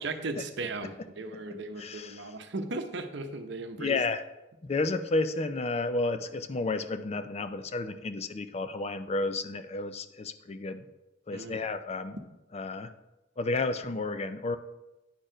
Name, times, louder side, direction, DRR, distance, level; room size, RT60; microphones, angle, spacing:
voice 1, 0.0-4.0 11.3-11.6, right 2 dB, 65° right, 7 dB, 0.8 m, -37 dB
voice 2, 1.8-2.3 3.8-4.2 4.6-10.9 11.3-12.2 12.5-12.9 13.4-14.6, left 3 dB, 35° left, 10 dB, 0.5 m, -31 dB
10.0 x 4.4 x 5.0 m, 0.98 s
head